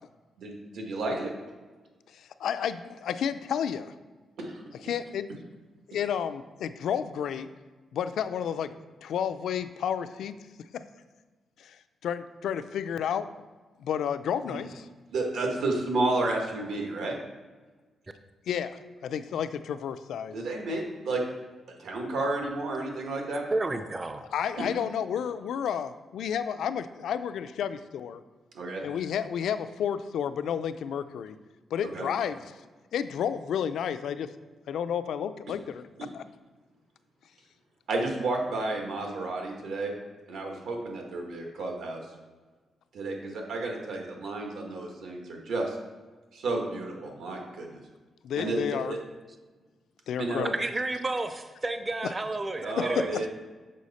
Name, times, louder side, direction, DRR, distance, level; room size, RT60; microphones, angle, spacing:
voice 1, 0.4-1.3 4.4-4.6 14.5-14.6 15.1-17.1 20.3-21.2 21.8-23.4 28.5-28.8 31.9-32.1 37.9-39.9 40.3-42.0 42.9-45.8 46.3-47.8 48.4-49.0 50.2-50.5 52.6-53.3, right 2 dB, 80° right, 1 dB, 1.4 m, -31 dB
voice 2, 2.1-3.9 4.8-5.3 5.9-7.5 7.9-8.7 9.0-10.3 11.6-11.8 12.0-13.3 13.8-14.9 18.5-20.4 24.3-28.2 28.8-31.4 31.7-32.6 32.9-34.3 34.7-35.9 36.1-36.2 48.2-48.9 50.1-50.5 52.8-52.9, left 8 dB, 80° left, 11 dB, 0.4 m, -31 dB
voice 3, 23.5-24.2 50.5-53.1, right 2 dB, 20° right, 8 dB, 0.4 m, -31 dB
6.4 x 5.5 x 4.1 m, 1.3 s
cardioid pair, 130°, 0 cm